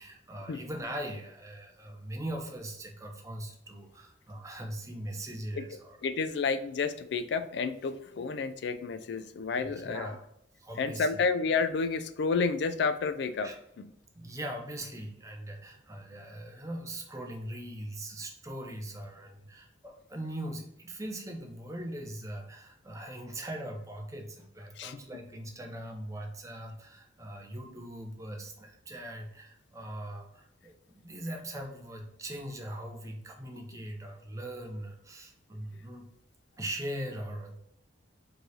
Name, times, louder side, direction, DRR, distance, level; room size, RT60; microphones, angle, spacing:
voice 1, 0.0-6.4 9.5-10.2 10.6-11.2 13.4-13.6 14.1-36.1 36.6-37.6, right 1 dB, 15° right, 2 dB, 0.6 m, -41 dB
voice 2, 6.0-10.1 10.8-13.5 13.8-13.9 24.8-25.0, left 4 dB, 60° left, 12 dB, 0.3 m, -30 dB
4.5 x 3.2 x 2.7 m, 0.79 s
head